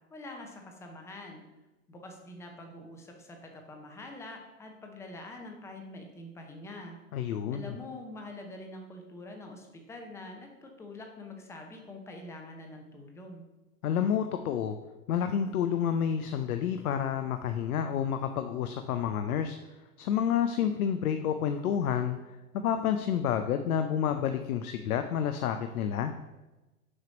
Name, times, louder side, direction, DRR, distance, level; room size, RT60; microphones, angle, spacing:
voice 1, 0.1-1.4 1.9-7.0 7.5-13.5, left 2 dB, 5° left, 3 dB, 0.5 m, -45 dB
voice 2, 7.1-7.8 13.8-14.8 15.1-19.6 20.0-22.2 22.6-26.1, left 8 dB, 85° left, 7 dB, 0.6 m, -29 dB
6.4 x 3.0 x 5.1 m, 1.1 s
hypercardioid pair, 125°, 42 cm